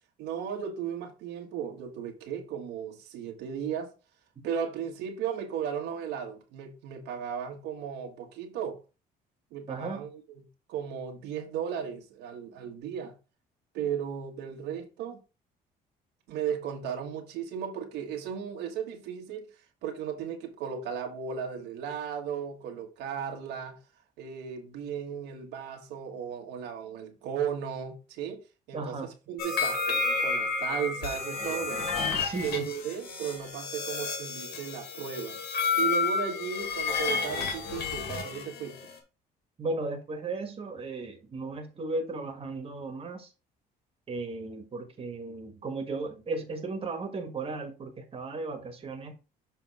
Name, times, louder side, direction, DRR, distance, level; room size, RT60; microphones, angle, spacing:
voice 1, 0.2-3.9 4.4-8.8 9.5-10.4 10.7-13.1 13.7-15.2 16.3-19.5 19.8-23.8 24.2-29.0 29.3-31.9 32.4-35.4 35.8-38.7, right 8 dB, 90° right, 1.5 m, -35 dB
voice 2, 9.7-10.1 28.7-29.1 32.1-32.7 39.6-43.3 44.1-49.1, right 3 dB, 35° right, 1.7 m, -35 dB
sound 1, 29.4-38.9, left 4 dB, 70° left, 2.0 m, -31 dB
6.8 x 3.5 x 4.8 m
cardioid pair, 110°, 17 cm